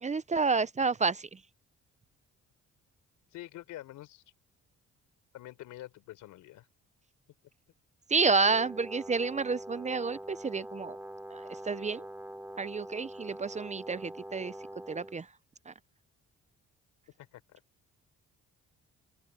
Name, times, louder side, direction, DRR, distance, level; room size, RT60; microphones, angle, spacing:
voice 1, 0.0-1.3 8.1-11.0 11.3-12.0 12.6-14.5 14.9-15.3 15.7-15.8, right 4 dB, 25° right, 0.6 m, -30 dB
voice 2, 3.3-4.2 5.3-6.7 17.2-17.6, left 15 dB, 90° left, 4.0 m, -46 dB
Brass instrument, 8.2-15.2, right 1 dB, 5° right, 3.0 m, -44 dB
open air
cardioid pair, 90°, 30 cm